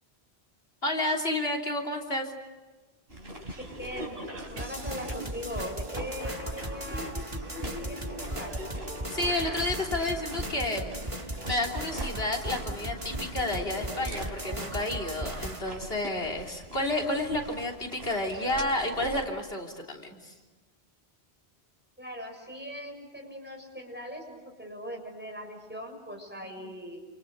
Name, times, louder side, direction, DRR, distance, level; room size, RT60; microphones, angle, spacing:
voice 1, 0.8-2.3 9.1-10.9 11.2-20.3 26.6-26.7, left 1 dB, 75° left, 1 dB, 3.7 m, -31 dB
sound 1, 3.1-19.3, right 1 dB, 70° right, 4.3 m, -42 dB
voice 2, 3.8-4.1 4.5-8.5 22.0-27.1, equal, 10° right, 2 dB, 6.7 m, -40 dB
Cough, 4.3-4.8 5.1-5.2 5.7-5.9 6.2-7.2 9.1-10.5 13.8-15.1 15.4-15.5 16.6-16.7, right 1 dB, 55° right, 6.5 m, -45 dB
sound 2, 4.6-15.6, right 1 dB, 30° right, 2.0 m, -37 dB
29.0 x 28.5 x 6.7 m, 1.3 s
omnidirectional pair, 1.0 m